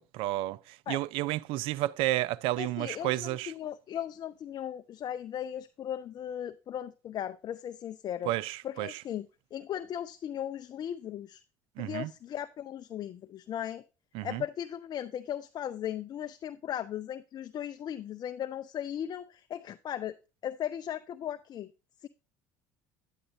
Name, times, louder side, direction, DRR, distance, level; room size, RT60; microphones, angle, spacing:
voice 1, 0.0-3.5 8.2-9.0 11.8-12.1 14.1-14.4, right 16 dB, 70° right, 0.4 m, -31 dB
voice 2, 2.6-8.3 8.6-9.3 9.5-11.4 11.8-13.8 14.2-20.1 20.4-21.7 22.0-22.1, left 10 dB, 45° left, 0.5 m, -37 dB
9.8 x 8.2 x 2.6 m
supercardioid pair, 80°, 10 cm